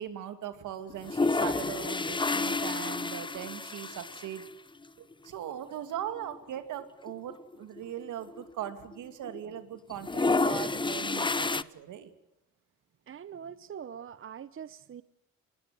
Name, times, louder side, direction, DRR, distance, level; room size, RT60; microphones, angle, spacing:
voice 1, 0.0-4.4 5.0-12.1, right 10 dB, 80° right, 2.8 m, -39 dB
sound 1, 0.9-4.5 4.8-4.9 5.1-5.2 6.2-6.4 6.8-6.9 7.1-9.0 9.2-9.6 9.9-11.6, left 3 dB, 15° left, 0.8 m, -30 dB
voice 2, 13.1-15.0, right 8 dB, 45° right, 0.9 m, -43 dB
25.5 x 21.0 x 7.8 m
cardioid pair, 90°, 30 cm